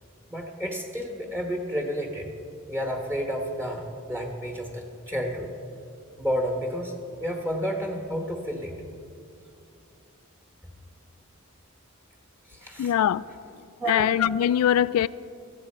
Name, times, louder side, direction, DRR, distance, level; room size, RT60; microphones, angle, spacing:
voice 1, 0.3-2.3 2.7-5.5 6.2-6.9 7.2-8.7 12.5-12.9 13.8-14.1, equal, 10° right, 1.1 m, -30 dB
voice 2, 12.8-13.2 13.9-15.1, left 10 dB, 85° left, 0.3 m, -22 dB
17.5 x 14.0 x 4.3 m
head